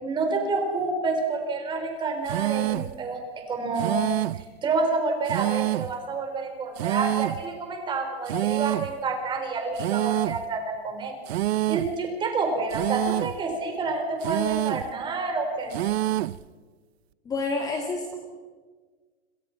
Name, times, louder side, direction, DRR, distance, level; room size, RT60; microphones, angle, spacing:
voice 1, 0.0-3.2 3.5-4.0 4.6-11.1 11.7-15.8, right 3 dB, 15° right, 4 dB, 4.1 m, -28 dB
sound 1, 2.3-3.0 3.8-4.5 5.3-6.0 6.8-7.5 8.3-9.0 9.8-10.5 11.3-12.0 12.7-13.4 14.2-14.9 15.7-16.4, right 15 dB, 75° right, 0.8 m, -27 dB
voice 2, 17.3-18.2, left 3 dB, 10° left, 2 dB, 2.4 m, -28 dB
29.5 x 28.0 x 5.9 m, 1.4 s
supercardioid pair, 170°, 32 cm